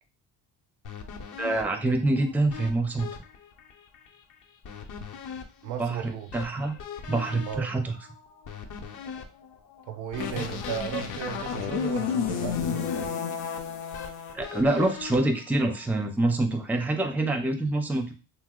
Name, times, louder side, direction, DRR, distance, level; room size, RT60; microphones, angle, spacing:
sound 1, 0.8-16.1, left 6 dB, 50° left, 0.7 m, -43 dB
voice 1, 1.4-3.1 5.8-6.8 7.1-7.9 14.3-18.1, right 2 dB, 5° right, 0.4 m, -26 dB
voice 2, 5.6-6.3 7.5-7.7 9.9-13.1, right 9 dB, 85° right, 0.6 m, -35 dB
sound 2, 10.2-14.3, left 7 dB, 90° left, 0.6 m, -31 dB
2.7 x 2.0 x 3.6 m
supercardioid pair, 85°, 40 cm